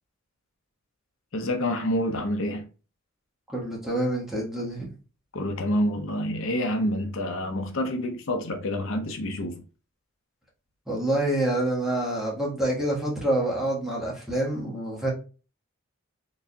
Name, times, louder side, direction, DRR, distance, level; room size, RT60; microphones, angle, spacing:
voice 1, 1.3-2.7 5.3-9.6, left 1 dB, 65° left, 0.6 m, -27 dB
voice 2, 3.5-4.9 10.9-15.1, right 1 dB, ahead, 1.3 m, -27 dB
4.1 x 3.5 x 2.2 m
head